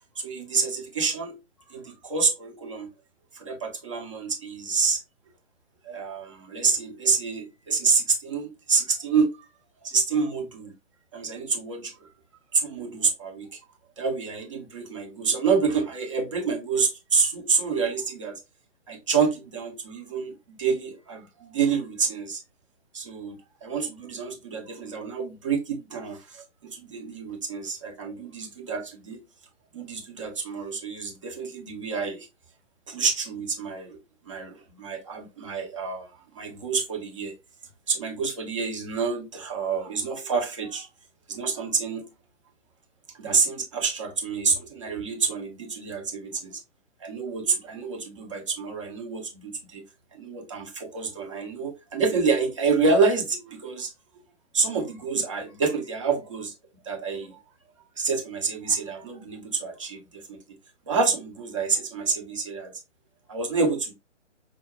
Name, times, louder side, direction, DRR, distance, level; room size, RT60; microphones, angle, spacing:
voice 1, 0.2-1.4 1.7-2.9 3.4-5.0 5.8-9.3 9.8-10.7 11.1-11.9 12.5-13.5 14.0-18.3 18.9-22.4 22.9-29.2 29.7-32.3 32.9-34.0 34.3-36.1 36.4-37.3 37.9-40.9 41.3-42.1 43.2-46.6 47.0-49.8 50.1-53.9 54.5-56.5 56.9-57.3 58.0-60.0 60.3-60.4 60.9-62.7 63.3-63.9, right 5 dB, 25° right, 0.6 m, -27 dB
4.6 x 2.2 x 2.2 m
figure-of-eight pair, 130°, 36 cm